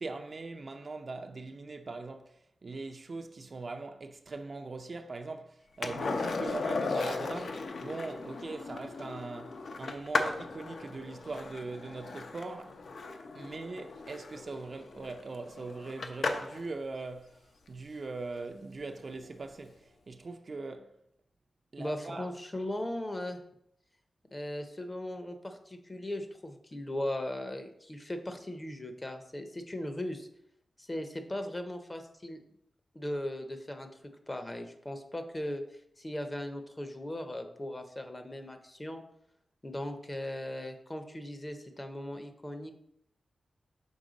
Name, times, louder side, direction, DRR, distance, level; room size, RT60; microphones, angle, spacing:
voice 1, 0.0-12.8 13.3-17.4 17.7-21.0 21.7-22.3, right 3 dB, 40° right, 0.4 m, -41 dB
Skateboard, 5.8-16.7 19.2-19.3, left 3 dB, 65° left, 0.6 m, -36 dB
voice 2, 21.8-23.4 24.3-30.3 30.8-32.4 32.9-33.9 34.3-39.0 39.6-42.7, left 1 dB, 20° left, 0.6 m, -38 dB
6.3 x 4.4 x 3.9 m
wide cardioid pair, 155°, 0 cm